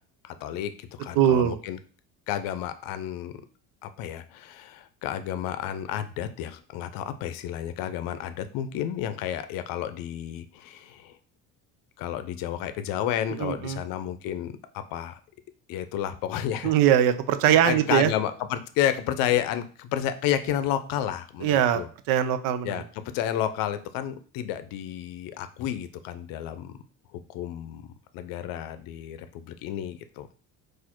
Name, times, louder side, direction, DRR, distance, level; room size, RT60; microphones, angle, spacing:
voice 1, 0.2-1.8 2.3-3.3 3.8-11.2 12.0-15.2 15.7-16.7 17.4-21.9 22.6-22.8 23.1-26.7 27.1-30.4, left 11 dB, 80° left, 11 dB, 0.6 m, -31 dB
voice 2, 1.2-1.6 13.4-13.8 16.6-18.1 21.4-21.8 22.1-22.8, right 10 dB, 80° right, 11 dB, 0.6 m, -21 dB
4.2 x 2.5 x 4.4 m, 0.42 s
cardioid pair, 145°, 33 cm